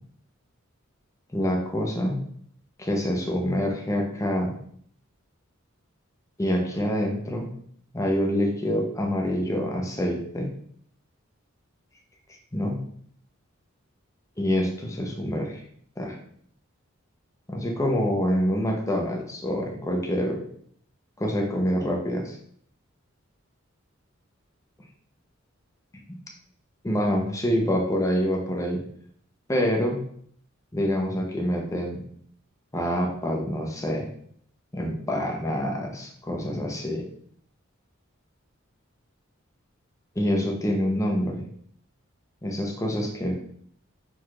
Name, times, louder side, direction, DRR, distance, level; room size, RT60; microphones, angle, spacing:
voice 1, 1.3-2.2 2.8-4.5 6.4-7.5 7.9-10.5 12.5-12.8 14.4-15.6 16.0-16.1 17.5-20.4 21.2-22.4 26.8-28.8 29.5-30.0 30.7-32.0 32.7-34.1 34.7-37.0 40.2-41.4 42.4-43.3, equal, 15° left, 0 dB, 0.7 m, -26 dB
4.6 x 4.1 x 2.4 m, 0.63 s
head